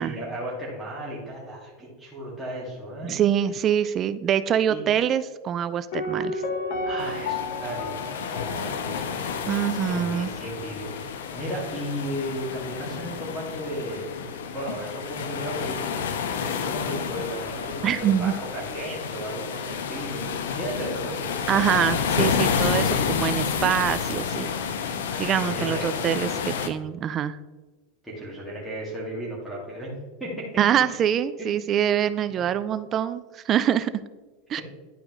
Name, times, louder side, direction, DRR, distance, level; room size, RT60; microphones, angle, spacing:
voice 1, 0.0-3.2 4.7-4.8 6.8-7.9 8.3-9.3 9.8-14.2 14.5-21.3 25.1-25.9 28.0-29.9 30.2-30.4 31.4-31.6, equal, ahead, -7 dB, 2.0 m, -35 dB
voice 2, 3.0-6.4 9.5-10.3 17.8-18.3 21.5-24.5 25.2-27.4 30.6-33.9 34.5-34.6, right 9 dB, 30° right, 14 dB, 0.4 m, -24 dB
Piano, 5.9-9.7 9.9-10.0, left 2 dB, 65° left, 1.2 m, -32 dB
sound 1, 7.0-26.7, left 6 dB, 90° left, 0.7 m, -30 dB
11.0 x 5.0 x 3.1 m, 1.2 s
supercardioid pair, 140°, 0 cm